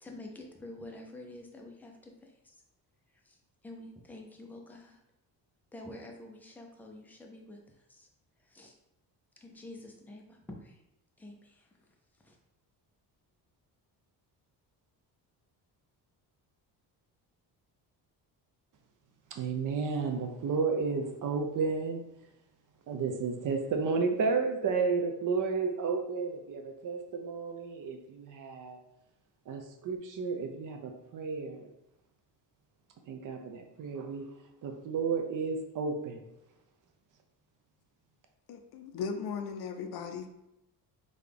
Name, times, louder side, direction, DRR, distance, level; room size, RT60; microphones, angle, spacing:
voice 1, 0.0-2.6 3.2-3.4 3.6-5.0 5.7-8.1 8.4-8.7 9.4-10.8 11.2-12.4, left 1 dB, 5° left, 1 dB, 0.3 m, -48 dB
voice 2, 19.3-22.0 22.9-28.8 29.5-31.7 33.1-34.3 34.6-36.2, right 4 dB, 50° right, 4 dB, 0.5 m, -32 dB
voice 3, 38.5-40.3, left 5 dB, 65° left, 6 dB, 0.5 m, -37 dB
3.8 x 2.3 x 3.3 m, 0.88 s
cardioid pair, 140°, 42 cm